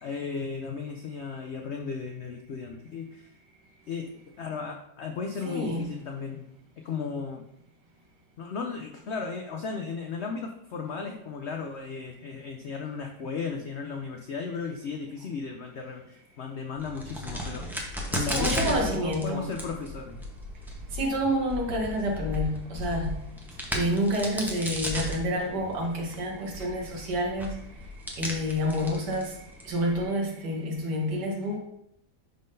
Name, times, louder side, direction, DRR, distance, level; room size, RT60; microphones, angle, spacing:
voice 1, 0.0-3.3 3.9-4.1 4.4-6.5 6.8-7.4 8.4-17.6 18.1-20.2, left 5 dB, 85° left, 3 dB, 0.6 m, -35 dB
voice 2, 5.4-5.8 18.2-19.5 20.9-23.2 23.7-31.6, equal, 80° right, 0 dB, 1.8 m, -29 dB
Crack, 16.8-30.0, equal, ahead, 0.5 m, -35 dB
10.5 x 3.7 x 2.6 m, 0.80 s
omnidirectional pair, 1.8 m